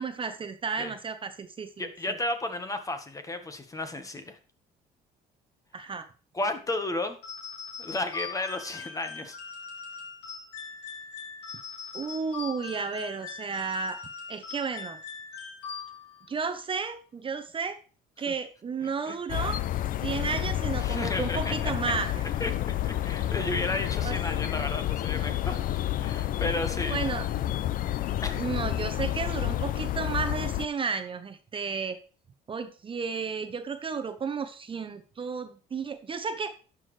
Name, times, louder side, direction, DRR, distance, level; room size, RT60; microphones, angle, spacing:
voice 1, 0.0-2.2 5.7-6.1 11.9-14.0 14.3-15.0 16.3-17.8 18.2-19.6 20.0-22.2 24.0-24.2 26.9-27.3 28.4-32.0 32.5-36.5, right 5 dB, 30° right, 10 dB, 0.8 m, -33 dB
voice 2, 1.8-4.4 6.3-7.2 7.8-9.4 18.3-18.4 18.8-19.2 20.8-21.7 22.4-25.6 26.0-27.0 28.2-28.4, left 2 dB, 20° left, 8 dB, 1.2 m, -33 dB
sound 1, 7.2-16.3, left 5 dB, 85° left, 2.9 m, -41 dB
sound 2, 19.3-30.7, left 13 dB, 55° left, 0.5 m, -30 dB
11.0 x 6.2 x 3.2 m, 0.37 s
cardioid pair, 110°, 17 cm